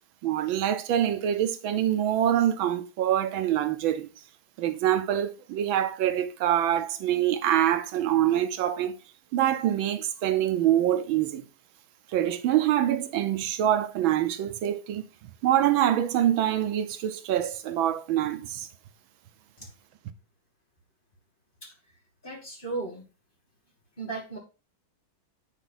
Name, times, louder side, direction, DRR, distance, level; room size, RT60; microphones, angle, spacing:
voice 1, 0.2-4.1 4.6-8.9 9.3-11.4 12.1-15.0 15.4-18.7, right 11 dB, 90° right, 1.6 m, -25 dB
voice 2, 22.2-23.0 24.0-24.4, right 3 dB, 25° left, 2.6 m, -35 dB
9.2 x 4.6 x 3.9 m
omnidirectional pair, 2.1 m